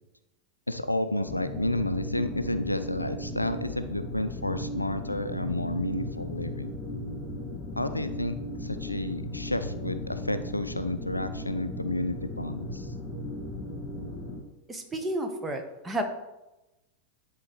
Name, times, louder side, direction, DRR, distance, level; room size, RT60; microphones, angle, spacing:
voice 1, 0.7-6.7 7.8-12.9, left 1 dB, 85° left, 10 dB, 0.4 m, -31 dB
sound 1, 1.3-14.4, left 1 dB, 30° left, 1.8 m, -36 dB
voice 2, 14.7-16.0, right 1 dB, 15° right, 5 dB, 1.1 m, -31 dB
10.5 x 3.8 x 4.5 m, 0.99 s
figure-of-eight pair, 90°, 0 cm